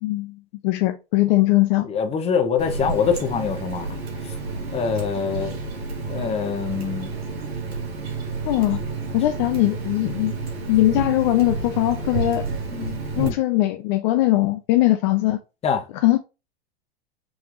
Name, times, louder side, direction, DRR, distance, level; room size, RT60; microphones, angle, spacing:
voice 1, 0.0-1.9 8.5-8.8 9.1-10.3 10.7-12.5 12.7-15.4 16.0-16.2, left 16 dB, 50° left, 0.5 m, -21 dB
voice 2, 1.8-4.0 4.7-5.5 6.1-7.1 13.2-13.3 15.6-15.8, left 6 dB, 20° left, 0.8 m, -24 dB
Water tap faucet, 2.6-13.3, right 4 dB, 75° right, 1.8 m, -30 dB
4.8 x 3.3 x 2.5 m
hypercardioid pair, 105°, 31 cm